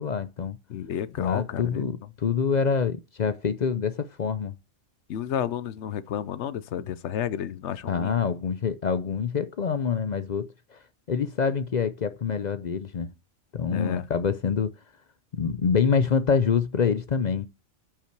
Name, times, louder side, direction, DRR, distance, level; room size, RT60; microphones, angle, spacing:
voice 1, 0.0-0.6 1.2-4.5 7.9-10.8 11.1-13.1 13.5-14.7 15.3-17.5, left 6 dB, 50° left, 0.5 m, -26 dB
voice 2, 0.7-2.1 5.1-8.1 13.7-14.1, left 9 dB, 70° left, 1.0 m, -31 dB
8.6 x 5.7 x 4.6 m
omnidirectional pair, 1.3 m